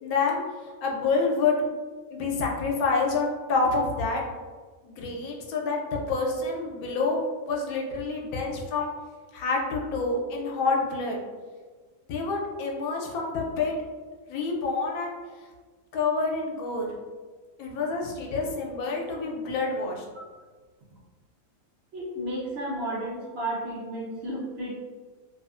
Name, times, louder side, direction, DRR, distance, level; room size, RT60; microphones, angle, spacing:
voice 1, 0.0-1.6 2.1-4.2 4.8-8.9 9.3-11.2 12.1-13.7 14.3-15.2 15.9-16.9 17.6-20.0, left 4 dB, 90° left, -1 dB, 1.1 m, -28 dB
voice 2, 21.9-24.7, right 1 dB, 60° right, -5 dB, 0.7 m, -32 dB
2.6 x 2.4 x 2.4 m, 1.4 s
omnidirectional pair, 1.5 m